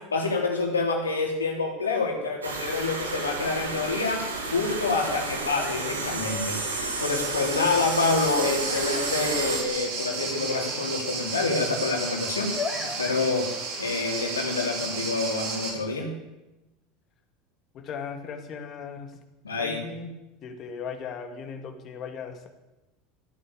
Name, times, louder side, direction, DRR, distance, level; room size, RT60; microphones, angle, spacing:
voice 1, 0.1-4.2 4.5-12.5 12.8-13.5 13.8-16.1 19.4-19.8, left 3 dB, 85° left, 1 dB, 3.4 m, -27 dB
sound 1, 2.4-9.6, right 3 dB, 85° right, 2.7 m, -32 dB
sound 2, 5.0-6.9 7.4-7.7 8.7-9.6 9.9-10.9 11.3-11.9 12.2-13.5, left 5 dB, 25° left, 4.5 m, -39 dB
sound 3, 6.9-15.7, right 4 dB, 60° right, 4.8 m, -33 dB
voice 2, 17.7-19.2 19.6-20.1 20.4-22.5, left 6 dB, 45° left, 6 dB, 2.5 m, -37 dB
15.0 x 9.8 x 8.5 m, 1.0 s
figure-of-eight pair, 75°, 0 cm